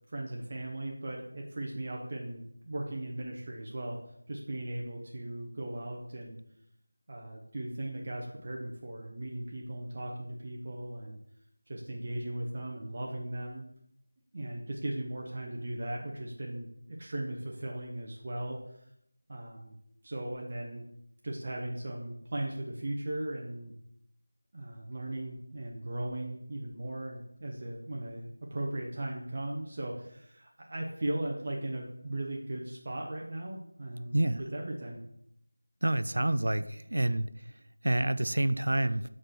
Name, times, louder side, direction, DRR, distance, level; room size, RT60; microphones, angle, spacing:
voice 1, 0.1-4.0 4.3-6.4 7.1-11.2 11.7-13.6 14.3-18.9 19.3-19.8 20.0-20.9 21.2-23.7 24.5-34.2 34.5-35.0, right 1 dB, 35° right, -1 dB, 0.8 m, -37 dB
voice 2, 34.1-34.4 35.8-37.3 37.8-39.0, right 1 dB, 60° right, 14 dB, 0.4 m, -28 dB
4.8 x 4.6 x 6.0 m, 0.74 s
figure-of-eight pair, 170°, 0 cm